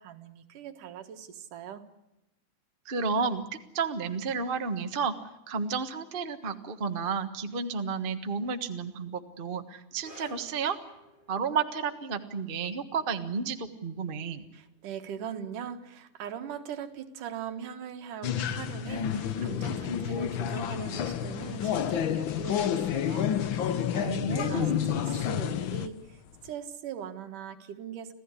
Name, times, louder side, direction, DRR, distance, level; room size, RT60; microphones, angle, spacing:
voice 1, 0.0-1.9 14.5-24.2 24.5-28.1, right 8 dB, 80° right, 7 dB, 3.1 m, -41 dB
voice 2, 2.8-5.1 5.5-10.8 11.3-14.4 24.0-24.7, right 5 dB, 60° right, 7 dB, 0.5 m, -32 dB
sound 1, 10.0-17.0 17.2-17.5 18.2-18.3, left 1 dB, 15° left, 5.6 m, -56 dB
sound 2, 18.2-25.9, left 9 dB, 80° left, 1.0 m, -29 dB
Vehicle horn car horn honking, 21.4-26.5, left 8 dB, 65° left, 2.4 m, -49 dB
27.0 x 15.5 x 9.8 m, 0.90 s
omnidirectional pair, 3.6 m